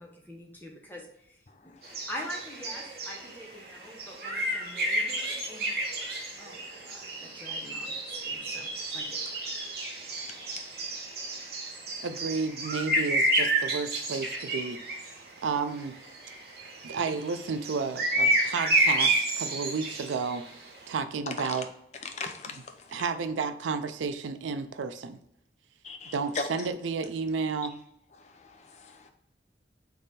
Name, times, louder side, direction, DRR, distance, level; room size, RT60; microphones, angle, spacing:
voice 1, 0.0-1.4 1.6-1.7 2.1-5.9 6.4-7.9 8.2-8.7 8.9-9.2 10.4-10.6, equal, 10° left, -1 dB, 0.8 m, -44 dB
sound 1, 1.8-15.1 15.8-20.5, right 1 dB, 55° right, 0.9 m, -30 dB
voice 2, 12.0-14.8 15.4-16.0 16.8-20.5 20.9-21.7 22.5-22.6 22.9-25.2 26.1-27.8, right 5 dB, 90° right, 10 dB, 0.4 m, -32 dB
voice 3, 22.0-22.6 25.8-26.4 28.4-29.1, left 4 dB, 40° left, 5 dB, 0.5 m, -37 dB
3.5 x 3.2 x 4.1 m, 0.74 s
head